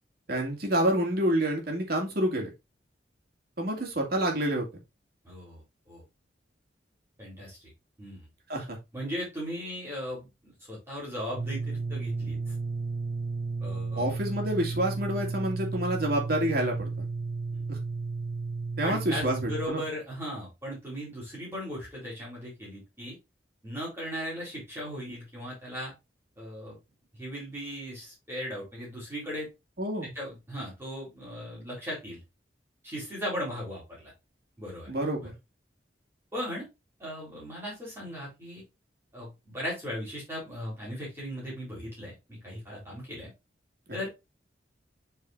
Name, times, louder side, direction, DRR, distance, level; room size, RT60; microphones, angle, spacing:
voice 1, 0.3-2.5 3.6-4.7 8.5-8.8 14.0-17.1 17.7-17.8 18.8-19.8 29.8-30.1 34.9-35.3, right 1 dB, 55° right, 1 dB, 2.3 m, -28 dB
voice 2, 5.2-5.6 5.9-6.0 7.2-7.6 8.0-8.3 8.9-12.5 13.6-14.1 17.5-17.6 18.8-23.2 23.6-25.9 26.4-26.8 27.2-29.5 30.1-32.2 32.8-34.1 34.6-34.9 35.2-35.3 36.3-36.7 37.0-38.6 39.1-43.3 43.9-44.1, equal, 15° right, -6 dB, 3.7 m, -37 dB
sound 1, 11.4-19.7, right 4 dB, 40° right, 0.4 m, -33 dB
7.8 x 4.6 x 2.6 m, 0.23 s
head